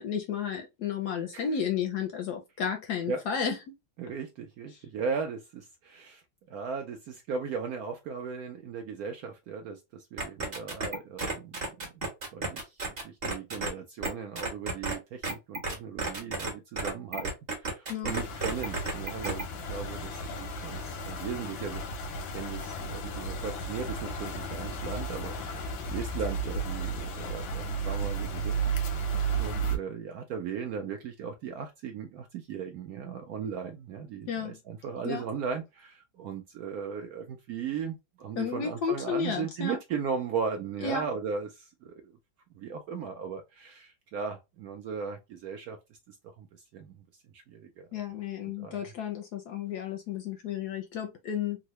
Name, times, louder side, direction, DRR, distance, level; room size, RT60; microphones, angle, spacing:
voice 1, 0.0-3.6 17.9-18.1 34.3-34.6 35.0-35.2 38.4-39.8 40.8-41.0 47.9-51.6, left 7 dB, 70° left, 0.9 m, -32 dB
voice 2, 4.0-6.2 6.5-11.9 12.3-17.3 17.6-19.4 19.7-42.0 42.5-45.8 46.1-47.0 47.3-47.9 48.4-48.8, right 6 dB, 80° right, 0.8 m, -37 dB
sound 1, 10.2-13.7 14.0-14.1 14.4-14.9 15.2-16.5 16.8-19.4, right 3 dB, 35° right, 1.2 m, -32 dB
sound 2, 18.1-29.8, right 3 dB, 90° left, 1.5 m, -34 dB
3.7 x 2.0 x 3.0 m
omnidirectional pair, 2.1 m